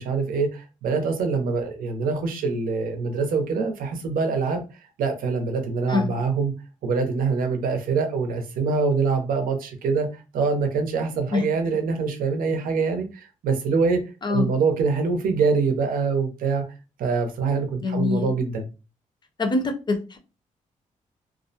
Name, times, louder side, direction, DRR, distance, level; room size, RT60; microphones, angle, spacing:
voice 1, 0.0-4.6 5.0-6.5 6.8-14.0 14.3-16.6 17.0-18.7, right 4 dB, 85° right, 5 dB, 0.6 m, -24 dB
voice 2, 17.8-18.3 19.4-20.2, left 3 dB, 30° left, 6 dB, 0.6 m, -24 dB
2.4 x 2.1 x 2.6 m, 0.31 s
cardioid pair, 85°, 14 cm